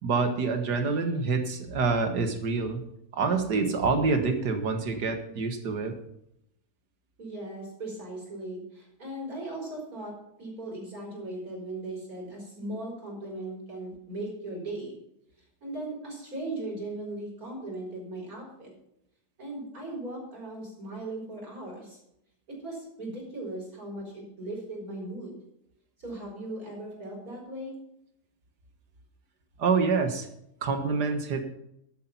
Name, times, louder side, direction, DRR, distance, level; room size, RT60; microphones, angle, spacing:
voice 1, 0.0-2.8 3.1-6.0 29.6-30.3 30.6-31.4, right 4 dB, 75° right, 6 dB, 2.1 m, -26 dB
voice 2, 7.2-15.0 15.6-18.7 19.4-22.0 22.5-25.3 26.0-27.8, right 2 dB, 60° right, -2 dB, 6.0 m, -38 dB
12.5 x 8.3 x 5.9 m, 0.78 s
omnidirectional pair, 1.8 m